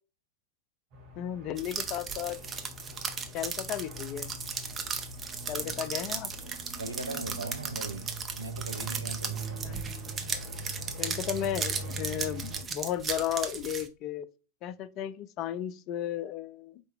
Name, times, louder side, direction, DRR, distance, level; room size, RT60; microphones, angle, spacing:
sound 1, 0.9-12.6, right 1 dB, 45° right, 2.5 m, -42 dB
voice 1, 1.2-2.4 3.3-4.3 5.5-6.3 9.6-9.8 11.0-14.3 14.6-16.8, left 10 dB, 40° left, 0.4 m, -34 dB
sound 2, 1.6-13.9, right 6 dB, 20° right, 0.7 m, -36 dB
voice 2, 6.8-8.0 8.4-9.6, right 2 dB, 80° right, 0.6 m, -39 dB
5.1 x 4.4 x 2.2 m
figure-of-eight pair, 90°, 0 cm